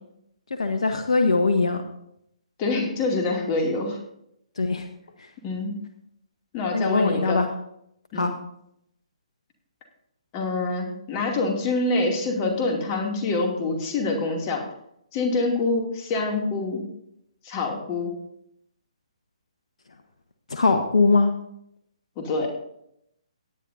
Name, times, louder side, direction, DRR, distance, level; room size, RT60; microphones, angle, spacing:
voice 1, 0.6-1.8 4.6-4.8 6.7-7.5 8.2-8.3 20.5-21.3, left 3 dB, 70° left, 7 dB, 1.0 m, -21 dB
voice 2, 2.6-4.0 5.4-5.7 6.5-7.4 8.1-8.3 10.3-14.6 15.1-16.8 17.4-18.1 22.2-22.5, left 3 dB, 30° left, 1 dB, 2.6 m, -26 dB
18.0 x 10.0 x 2.7 m, 0.76 s
figure-of-eight pair, 135°, 4 cm